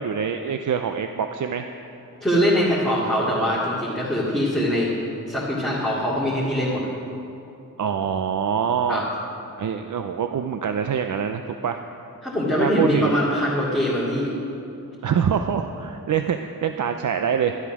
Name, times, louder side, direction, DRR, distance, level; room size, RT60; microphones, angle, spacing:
voice 1, 0.0-1.7 7.8-9.0 9.6-11.8 12.6-13.3 15.0-17.6, right 7 dB, 65° right, 7 dB, 0.6 m, -25 dB
voice 2, 2.2-4.9 5.3-6.8 8.9-9.0 12.2-14.3, equal, ahead, -9 dB, 2.4 m, -22 dB
12.0 x 11.5 x 6.1 m, 2.8 s
wide cardioid pair, 115°, 33 cm